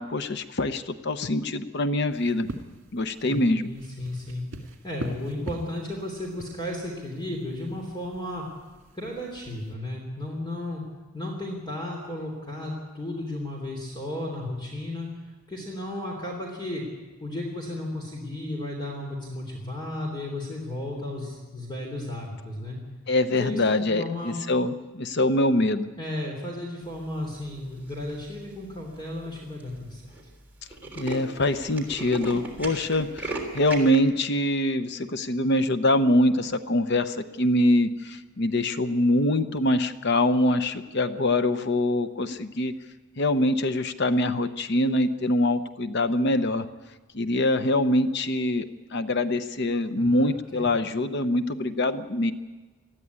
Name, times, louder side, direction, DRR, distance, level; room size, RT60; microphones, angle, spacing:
voice 1, 0.0-2.5 2.9-3.7 23.1-25.9 31.0-42.7 43.2-46.7 47.1-48.7 48.9-52.3, left 1 dB, 55° left, 10 dB, 0.8 m, -24 dB
sound 1, 2.1-9.7, right 1 dB, 60° right, 2.3 m, -43 dB
voice 2, 3.2-8.4 8.9-10.8 11.1-15.1 15.5-16.8 17.2-22.8 23.3-23.6 23.9-24.3 26.0-30.1 50.0-50.3 50.5-50.7, left 1 dB, 20° left, 0 dB, 3.2 m, -34 dB
Tools, 27.9-28.3 28.9-29.0 29.3-29.4 29.6-29.8 30.1-30.2 30.5-34.0, right 2 dB, 10° right, 3.4 m, -36 dB
20.0 x 14.0 x 9.6 m, 1.3 s
head